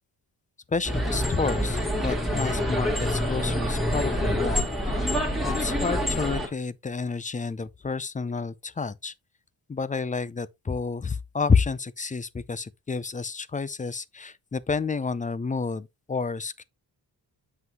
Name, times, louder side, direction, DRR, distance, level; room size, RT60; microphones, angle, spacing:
voice 1, 0.7-5.0 5.5-9.1 9.7-16.6, left 4 dB, 20° left, 0.4 m, -30 dB
sound 1, 0.8-6.5, equal, ahead, 1.8 m, -26 dB
7.7 x 5.7 x 2.9 m
wide cardioid pair, 125°, 42 cm